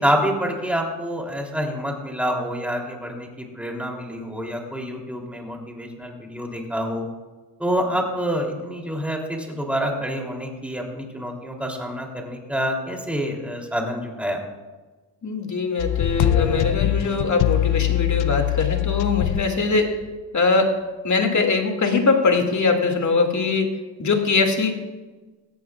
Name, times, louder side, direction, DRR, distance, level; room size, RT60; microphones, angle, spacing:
voice 1, 0.0-7.0 7.6-14.4, equal, 5° right, 0 dB, 3.2 m, -27 dB
voice 2, 15.2-20.0 20.3-20.8 21.0-24.7, left 4 dB, 40° left, 3 dB, 2.4 m, -22 dB
sound 1, 15.8-19.5 20.1-20.2, left 13 dB, 75° left, 0.8 m, -22 dB
18.5 x 14.5 x 2.5 m, 1.3 s
cardioid pair, 90°, 44 cm